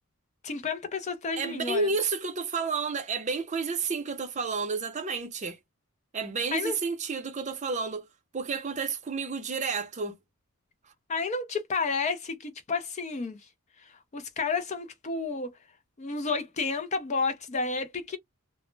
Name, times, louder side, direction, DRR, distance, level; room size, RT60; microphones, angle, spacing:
voice 1, 0.4-1.9 6.5-6.8 11.1-13.4 13.8-15.5 16.0-18.2, left 4 dB, 30° left, 0.4 m, -31 dB
voice 2, 1.4-5.6 6.1-8.0 8.3-10.2, right 4 dB, 30° right, 0.5 m, -31 dB
2.0 x 2.0 x 3.1 m
head